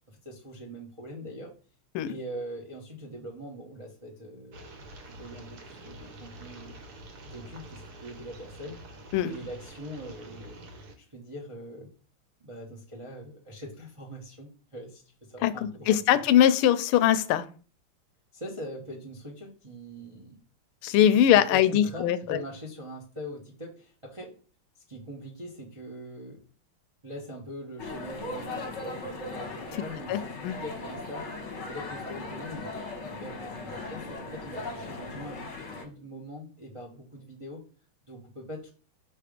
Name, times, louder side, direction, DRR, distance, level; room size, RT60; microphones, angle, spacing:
voice 1, 0.1-1.5 2.0-4.7 5.0-6.8 7.2-8.8 9.3-10.7 11.0-11.9 12.4-16.2 18.3-20.4 21.1-24.3 24.9-26.4 27.0-31.3 31.6-37.6 38.1-38.7, equal, 35° right, -3 dB, 0.5 m, -42 dB
sound 1, 4.5-10.9, right 1 dB, 55° right, 1.3 m, -47 dB
voice 2, 15.4-17.5 20.8-22.4 30.1-30.5, left 11 dB, 90° left, 14 dB, 1.5 m, -22 dB
sound 2, 27.8-35.8, left 3 dB, 40° left, 1.1 m, -38 dB
5.7 x 3.3 x 5.0 m, 0.39 s
omnidirectional pair, 2.3 m